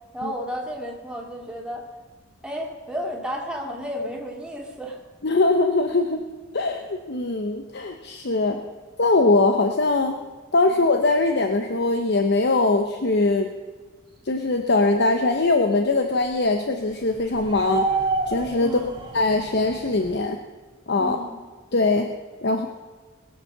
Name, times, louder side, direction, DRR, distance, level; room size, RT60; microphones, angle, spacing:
voice 1, 0.1-1.9 2.4-5.0 10.7-10.8 18.6-19.0 21.0-21.4, equal, 5° right, -1 dB, 2.3 m, -32 dB
voice 2, 5.2-6.2 6.5-8.6 9.0-10.2 10.5-13.5 14.3-17.9 18.3-18.7 19.1-20.4 20.9-21.2 21.7-22.1 22.4-22.7, left 2 dB, 55° left, 6 dB, 0.8 m, -21 dB
sound 1, 17.2-20.1, right 3 dB, 25° right, 1.7 m, -28 dB
21.5 x 7.4 x 6.7 m, 1.4 s
head